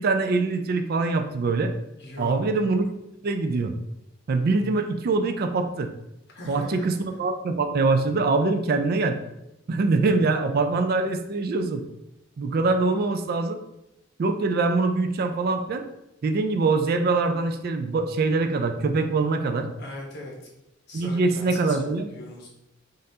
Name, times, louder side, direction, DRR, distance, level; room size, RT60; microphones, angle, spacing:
voice 1, 0.0-1.7 2.2-2.9 3.2-3.7 4.3-5.9 6.5-9.2 9.7-11.8 12.4-13.6 14.2-15.8 16.2-19.7 20.9-22.1, right 3 dB, 50° right, 7 dB, 0.4 m, -23 dB
voice 2, 2.0-2.3 6.3-6.8 19.8-20.4 20.9-22.5, left 1 dB, 60° left, -2 dB, 1.1 m, -39 dB
5.2 x 2.6 x 2.8 m, 0.88 s
head